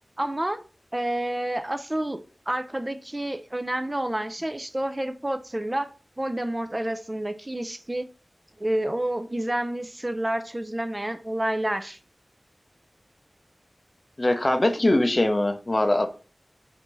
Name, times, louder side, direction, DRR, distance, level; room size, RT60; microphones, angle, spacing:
voice 1, 0.2-0.6 0.9-5.9 6.2-8.1 8.6-12.0, right 1 dB, 25° right, 0.3 m, -29 dB
voice 2, 14.2-16.1, left 1 dB, 35° left, 0.5 m, -22 dB
3.4 x 2.5 x 3.0 m
wide cardioid pair, 65°, 0 cm